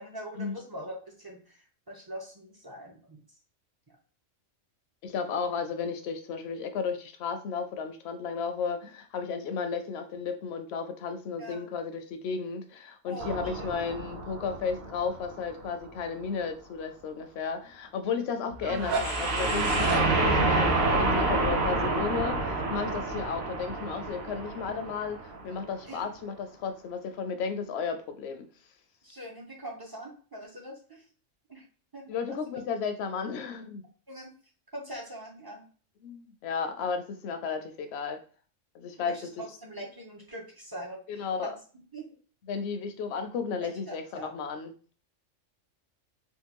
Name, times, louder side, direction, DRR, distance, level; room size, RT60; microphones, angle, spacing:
voice 1, 0.0-3.2 11.4-11.7 13.0-13.7 25.8-26.1 29.0-31.0 31.5-31.6 31.9-32.5 34.1-34.3 34.7-35.6 39.0-41.5 41.9-42.1 43.6-44.3, right 1 dB, 30° right, -1 dB, 0.4 m, -43 dB
voice 2, 5.0-28.4 32.1-33.8 36.0-38.2 38.7-39.4 41.1-41.5 42.5-44.7, left 5 dB, 65° left, 7 dB, 0.7 m, -33 dB
sound 1, 13.2-16.0 18.8-25.7, right 2 dB, 55° right, 0.9 m, -29 dB
sound 2, 18.5-23.4, right 2 dB, 85° right, 1.1 m, -32 dB
3.6 x 2.3 x 2.9 m, 0.40 s
omnidirectional pair, 1.3 m